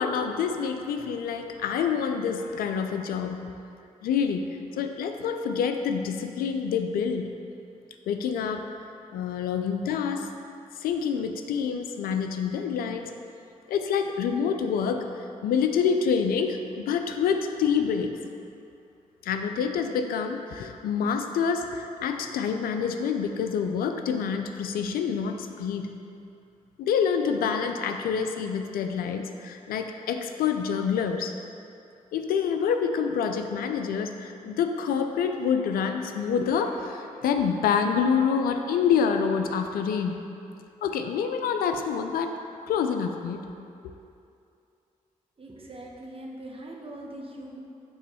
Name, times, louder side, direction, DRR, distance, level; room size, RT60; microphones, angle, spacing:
voice 1, 0.0-3.5 4.0-7.3 8.1-8.7 9.1-10.3 10.8-13.1 13.7-18.2 19.2-25.9 26.8-31.3 32.1-40.2 40.8-42.3 42.7-43.5, left 6 dB, 85° left, 6 dB, 0.4 m, -27 dB
voice 2, 45.4-47.6, right 1 dB, 40° right, -1 dB, 1.1 m, -41 dB
6.8 x 3.1 x 5.5 m, 2.6 s
supercardioid pair, 45°, 15 cm